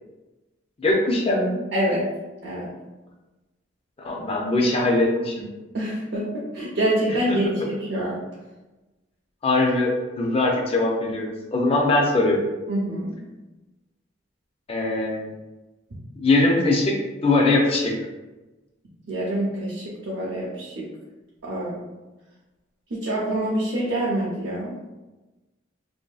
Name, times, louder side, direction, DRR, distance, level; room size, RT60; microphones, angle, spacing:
voice 1, 0.8-1.6 4.0-5.4 7.3-7.4 9.4-12.5 14.7-15.3 16.2-16.9 17.2-17.9, left 2 dB, 30° left, -1 dB, 0.4 m, -21 dB
voice 2, 1.7-2.0 2.4-2.7 5.7-8.2 12.7-13.2 19.1-20.8 21.4-21.8 22.9-24.9, right 1 dB, 65° right, -5 dB, 0.5 m, -26 dB
2.6 x 2.6 x 2.3 m, 1.1 s
head